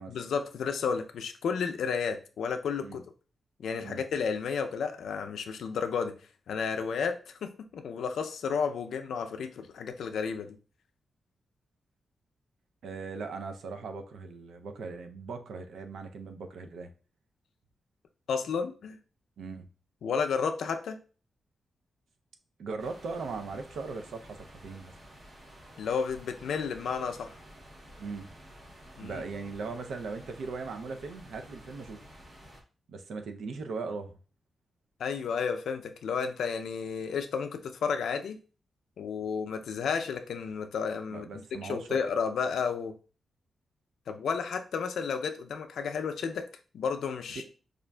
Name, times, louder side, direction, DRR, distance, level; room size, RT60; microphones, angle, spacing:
voice 1, 0.1-3.0 3.6-6.1 6.5-10.6 18.3-19.0 20.0-21.0 25.8-27.3 29.0-29.2 35.0-38.4 39.0-43.0 44.1-46.5 46.7-47.5, left 6 dB, 90° left, 7 dB, 0.4 m, -32 dB
voice 2, 12.8-16.9 19.4-19.7 22.6-24.9 28.0-28.3 29.0-32.0 32.9-34.1 41.1-42.0, right 4 dB, 90° right, 6 dB, 0.5 m, -39 dB
sound 1, 22.8-32.6, equal, 30° right, 0.7 m, -51 dB
5.0 x 2.4 x 2.2 m, 0.36 s
wide cardioid pair, 175°, 0 cm